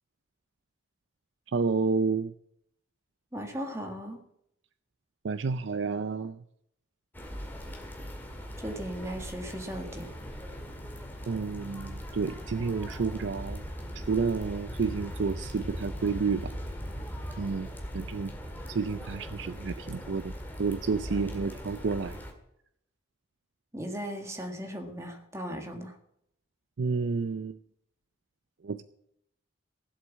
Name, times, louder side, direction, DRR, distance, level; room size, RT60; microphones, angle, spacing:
voice 1, 1.5-2.3 5.2-6.4 11.3-13.7 13.9-16.5 17.3-18.3 18.7-22.2 26.8-27.6 28.6-28.8, right 4 dB, 75° right, 12 dB, 0.5 m, -30 dB
voice 2, 3.3-4.2 8.6-10.1 23.7-26.0, equal, 15° right, 4 dB, 1.8 m, -37 dB
sound 1, 7.1-22.3, equal, 10° left, 2.0 m, -40 dB
16.0 x 7.9 x 7.3 m, 0.76 s
head